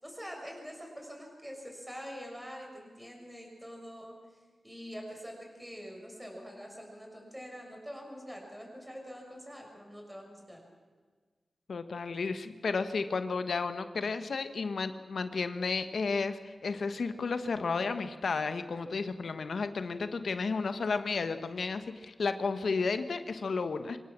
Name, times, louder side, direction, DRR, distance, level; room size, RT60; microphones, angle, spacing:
voice 1, 0.0-4.2 4.6-10.6, equal, 5° right, 0 dB, 6.6 m, -45 dB
voice 2, 11.7-24.0, left 4 dB, 70° left, 10 dB, 1.2 m, -32 dB
26.0 x 17.0 x 7.4 m, 1.5 s
wide cardioid pair, 75°, 0 cm